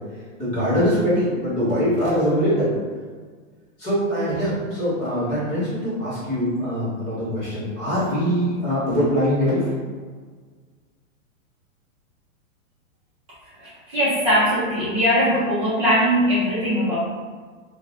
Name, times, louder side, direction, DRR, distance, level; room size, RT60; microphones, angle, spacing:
voice 1, 0.4-2.7 3.8-9.7, equal, 20° left, -12 dB, 1.3 m, -22 dB
voice 2, 13.6-17.0, equal, 15° right, -11 dB, 1.0 m, -20 dB
2.9 x 2.5 x 3.6 m, 1.5 s
supercardioid pair, 175°, 40 cm